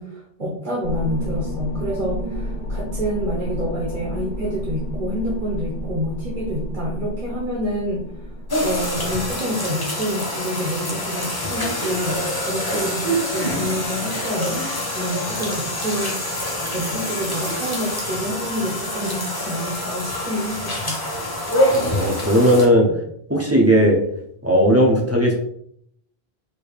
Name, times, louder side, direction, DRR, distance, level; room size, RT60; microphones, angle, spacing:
voice 1, 0.0-8.3 8.6-14.7 14.9-16.3 16.7-21.0, equal, 50° right, -5 dB, 1.2 m, -28 dB
sound 1, 0.8-9.3, equal, 55° left, 1.2 m, -30 dB
sound 2, 8.5-22.7, left 1 dB, 25° left, 0.9 m, -26 dB
voice 2, 21.8-22.9 23.3-24.0 24.4-25.3, equal, 20° right, 0 dB, 0.6 m, -16 dB
4.7 x 2.8 x 3.2 m, 0.70 s
omnidirectional pair, 1.0 m